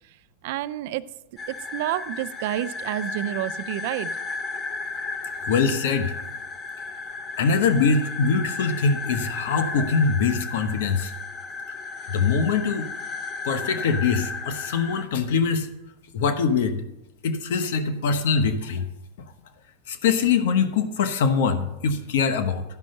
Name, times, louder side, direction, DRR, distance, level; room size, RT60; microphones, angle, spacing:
voice 1, 0.4-1.0 1.5-4.1, right 13 dB, 60° right, 12 dB, 0.5 m, -29 dB
sound 1, 1.4-15.1, left 4 dB, 25° left, 0.7 m, -34 dB
voice 2, 5.5-6.1 7.4-11.1 12.1-12.9 13.4-15.7 16.1-16.8 17.2-18.9 19.9-22.6, left 5 dB, 75° left, 9 dB, 1.0 m, -23 dB
13.0 x 5.4 x 6.5 m, 0.92 s
supercardioid pair, 150°, 0 cm